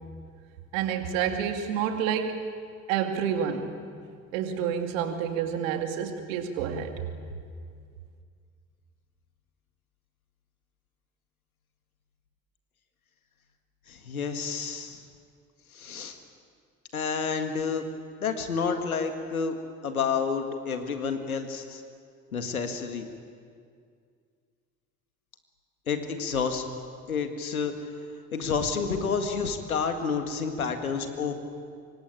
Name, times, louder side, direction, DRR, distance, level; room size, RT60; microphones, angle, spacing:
voice 1, 0.7-2.4 2.9-3.8 4.3-7.1, right 8 dB, 70° right, 5 dB, 2.6 m, -29 dB
voice 2, 13.9-15.0 15.7-16.2 16.9-17.8 18.2-19.6 19.8-21.8 22.3-23.1 25.9-26.6 27.1-27.7 28.3-31.3, left 5 dB, 85° left, 7 dB, 1.9 m, -29 dB
25.5 x 23.0 x 9.0 m, 2.2 s
figure-of-eight pair, 55°, 42 cm